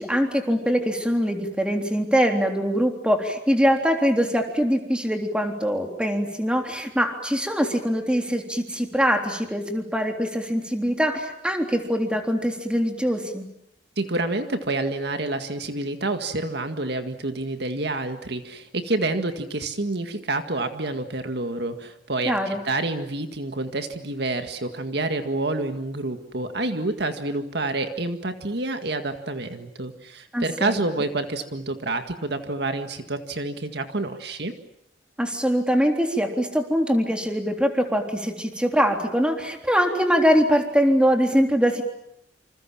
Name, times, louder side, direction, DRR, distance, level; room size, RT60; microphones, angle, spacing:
voice 1, 0.0-13.5 22.3-22.6 30.3-30.8 35.2-41.8, equal, 5° right, 3 dB, 3.6 m, -23 dB
voice 2, 14.0-34.6, right 2 dB, 65° right, 7 dB, 1.9 m, -28 dB
28.0 x 27.5 x 7.4 m, 0.76 s
head